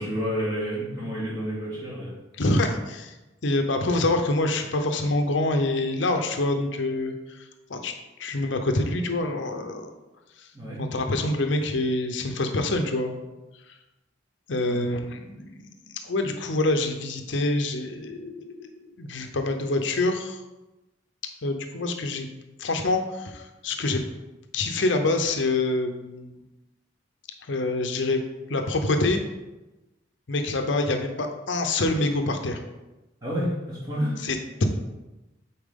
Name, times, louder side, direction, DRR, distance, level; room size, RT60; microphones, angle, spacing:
voice 1, 0.0-2.1 10.5-10.8 14.6-14.8 33.2-34.2, equal, 20° right, -7 dB, 2.4 m, -29 dB
voice 2, 2.4-3.1 3.4-7.9 8.2-9.9 10.4-10.5 10.8-13.2 14.5-15.7 16.0-18.7 19.0-20.4 21.4-22.3 22.6-24.0 24.5-26.4 27.5-28.2 28.5-29.2 30.3-32.6 34.2-34.6, left 2 dB, 70° left, 5 dB, 0.7 m, -26 dB
8.5 x 4.4 x 3.7 m, 1.0 s
head